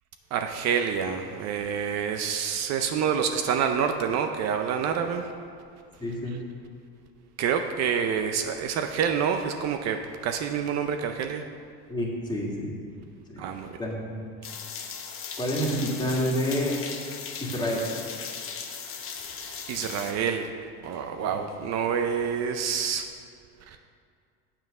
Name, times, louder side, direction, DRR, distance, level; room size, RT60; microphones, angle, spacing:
voice 1, 0.3-5.3 7.4-11.4 13.4-13.8 19.7-20.5 20.8-23.1 23.7-23.8, right 7 dB, 55° right, 6 dB, 0.6 m, -27 dB
voice 2, 6.0-6.4 11.9-12.8 13.3-13.5 13.8-14.1 15.4-16.7 17.4-17.9 21.2-21.3, equal, 15° left, -3 dB, 2.0 m, -28 dB
sound 1, 14.4-20.1, left 6 dB, 40° left, 1.0 m, -38 dB
7.3 x 5.8 x 6.5 m, 2.2 s
supercardioid pair, 110°, 32 cm